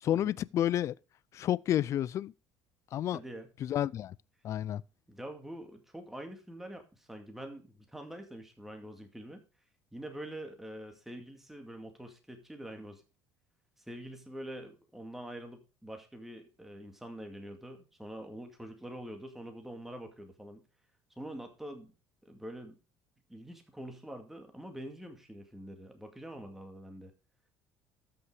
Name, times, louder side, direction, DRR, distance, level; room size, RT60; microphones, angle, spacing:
voice 1, 0.0-0.9 1.3-2.3 2.9-3.2 3.6-4.1 4.4-4.8, left 11 dB, 45° left, 0.4 m, -30 dB
voice 2, 3.1-3.5 5.1-9.4 9.9-13.0 13.8-20.6 21.2-21.9 22.3-22.8 23.3-27.1, right 1 dB, 5° right, 2.1 m, -45 dB
13.5 x 5.8 x 4.9 m
cardioid pair, 125°, 7 cm